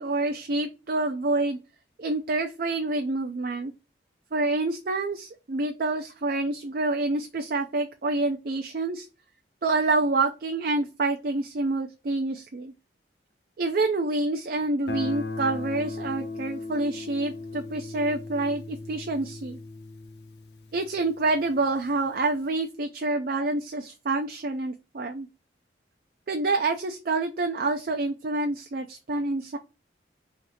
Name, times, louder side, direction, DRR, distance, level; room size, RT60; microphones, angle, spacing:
voice 1, 0.0-1.6 2.0-3.7 4.3-9.1 9.6-12.7 13.6-19.6 20.7-25.3 26.3-29.6, right 2 dB, 50° right, 6 dB, 0.4 m, -27 dB
Guitar, 14.9-21.6, left 3 dB, 65° left, 0.7 m, -37 dB
3.5 x 2.7 x 4.0 m, 0.30 s
head